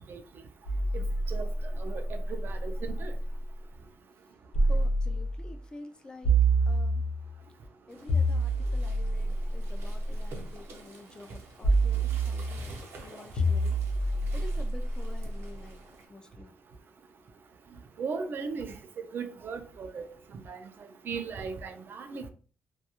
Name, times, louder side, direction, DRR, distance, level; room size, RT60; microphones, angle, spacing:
sound 1, 0.7-3.4 4.5-5.6 6.2-7.4 8.1-10.3 11.6-12.7 13.4-15.5, right 2 dB, 80° left, 0.8 m, -28 dB
voice 1, 2.4-3.1 18.0-18.7 19.1-20.1 20.5-20.6 21.1-22.3, right 5 dB, 50° right, 0.4 m, -36 dB
voice 2, 4.7-6.3 6.7-7.0 7.9-13.8 14.3-15.8 16.1-16.5, left 2 dB, 20° left, 0.3 m, -48 dB
sound 2, 7.9-16.1, right 3 dB, 75° right, 0.7 m, -51 dB
2.3 x 2.3 x 2.8 m
cardioid pair, 130°, 4 cm